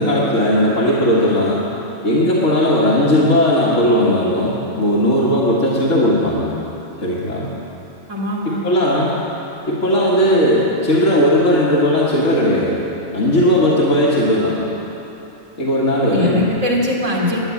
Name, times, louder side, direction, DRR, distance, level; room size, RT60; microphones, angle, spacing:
voice 1, 0.0-1.6 2.0-6.5 7.0-7.5 8.5-9.1 9.7-12.8 13.1-14.6 15.6-16.5, equal, 80° left, -8 dB, 2.1 m, -16 dB
voice 2, 8.1-8.6 16.1-17.4, left 1 dB, 75° right, -4 dB, 2.9 m, -21 dB
12.5 x 9.6 x 8.7 m, 3.0 s
omnidirectional pair, 1.3 m